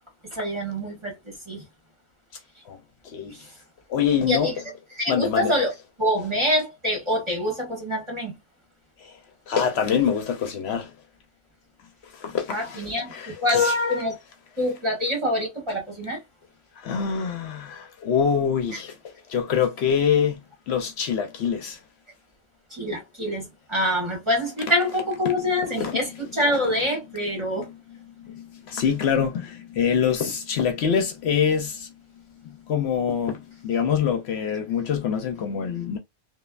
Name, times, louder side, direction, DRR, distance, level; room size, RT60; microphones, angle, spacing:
voice 1, 0.3-1.2 1.5-1.6 3.3-3.4 4.3-4.5 5.0-5.7 6.0-8.4 12.5-14.2 14.6-16.2 22.7-27.7, left 1 dB, 25° right, 1.5 m, -25 dB
voice 2, 3.0-3.5 3.9-4.5 5.1-5.5 9.0-9.2 9.5-10.9 12.1-13.8 16.8-20.4 20.7-21.8 25.7-26.0 28.2-31.9 32.7-36.0, left 7 dB, 70° left, 0.8 m, -25 dB
3.0 x 2.2 x 2.3 m
omnidirectional pair, 1.2 m